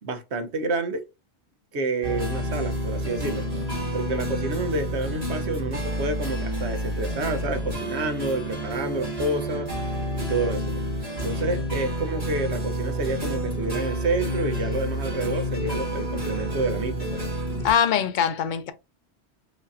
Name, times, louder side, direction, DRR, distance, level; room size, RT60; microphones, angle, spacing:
voice 1, 0.0-1.0 1.7-3.5 3.9-9.7 10.2-10.8 11.2-17.2, right 2 dB, 85° right, 1.1 m, -29 dB
sound 1, 2.0-17.7, equal, 35° right, 1.9 m, -29 dB
voice 2, 17.6-18.7, left 8 dB, 55° left, 0.7 m, -22 dB
5.0 x 2.7 x 2.5 m
omnidirectional pair, 1.1 m